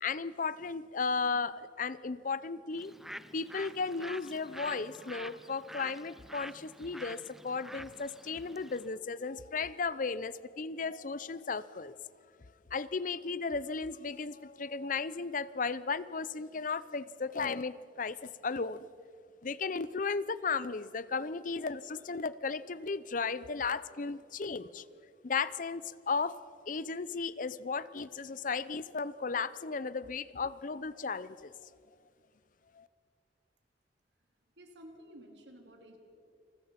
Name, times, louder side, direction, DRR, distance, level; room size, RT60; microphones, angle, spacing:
voice 1, 0.0-2.9 3.3-11.9 12.7-18.9 19.4-24.8 25.2-26.4 26.7-31.5 32.8-32.9, left 4 dB, 50° left, 17 dB, 0.7 m, -35 dB
Bird, 2.7-8.9, equal, ahead, 0.5 m, -47 dB
voice 2, 34.6-36.0, equal, 85° right, 3 dB, 3.6 m, -52 dB
29.5 x 20.5 x 5.9 m, 2.4 s
head